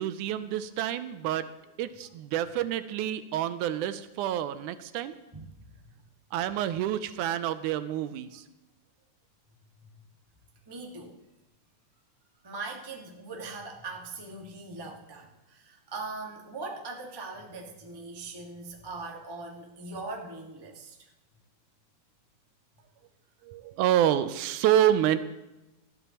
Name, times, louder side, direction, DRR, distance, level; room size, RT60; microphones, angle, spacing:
voice 1, 0.0-1.5 1.8-5.2 6.3-8.4 23.4-25.2, right 11 dB, 85° right, 12 dB, 2.1 m, -28 dB
voice 2, 5.3-5.7 9.8-10.0 10.7-11.2 12.4-21.1, right 3 dB, 35° right, 0 dB, 0.4 m, -41 dB
19.5 x 13.0 x 2.9 m, 1.0 s
omnidirectional pair, 3.6 m